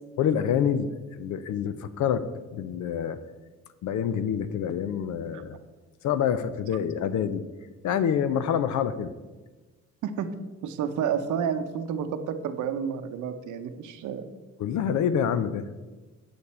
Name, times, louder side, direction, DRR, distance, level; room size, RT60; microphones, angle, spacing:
voice 1, 0.2-3.2 3.8-5.6 6.0-7.4 7.8-9.1 14.6-15.7, left 8 dB, 75° left, 12 dB, 0.6 m, -27 dB
voice 2, 10.6-14.2, right 7 dB, 80° right, 8 dB, 0.8 m, -30 dB
8.9 x 6.9 x 4.3 m, 1.2 s
cardioid pair, 90°, 30 cm